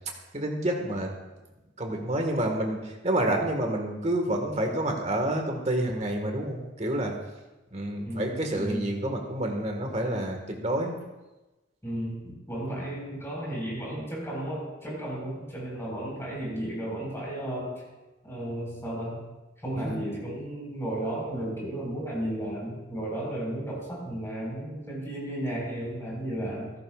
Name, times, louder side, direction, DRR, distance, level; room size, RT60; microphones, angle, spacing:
voice 1, 0.3-1.1 1.8-7.1 7.7-10.9 19.8-20.0, right 1 dB, 35° right, 2 dB, 1.6 m, -28 dB
voice 2, 8.0-8.9 11.8-17.8 18.2-19.2 19.6-26.7, right 1 dB, 15° left, -4 dB, 4.6 m, -34 dB
15.0 x 13.5 x 2.4 m, 1.1 s
head